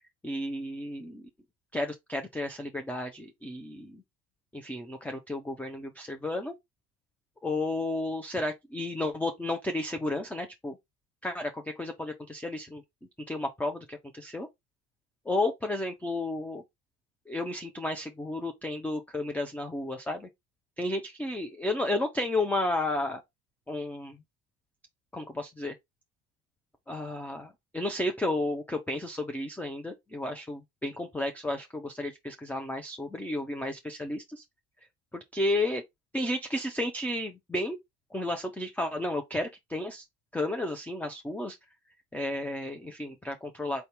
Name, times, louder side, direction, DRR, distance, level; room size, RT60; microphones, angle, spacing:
voice 1, 0.2-1.3 1.7-4.0 4.5-6.5 7.4-10.8 11.2-12.8 13.3-14.5 15.3-16.6 17.3-20.3 20.8-23.2 23.7-24.2 25.1-25.7 26.9-34.4 35.1-35.8 36.1-37.8 38.1-40.0 40.3-41.6 42.1-43.9, left 1 dB, 5° left, 0.5 m, -32 dB
4.5 x 2.7 x 3.4 m
figure-of-eight pair, 60°, 45 cm